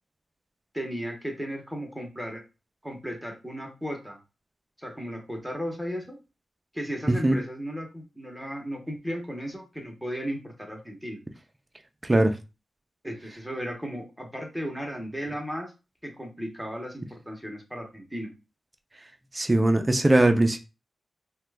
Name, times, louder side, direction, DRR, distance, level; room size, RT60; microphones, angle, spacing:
voice 1, 0.7-2.4 2.8-4.2 4.8-6.2 6.7-11.2 13.0-15.7 16.0-18.3, equal, ahead, 0.8 m, -35 dB
voice 2, 12.0-12.3 19.3-20.6, right 1 dB, 20° right, 0.4 m, -20 dB
2.9 x 2.2 x 3.3 m
wide cardioid pair, 105°, 0 cm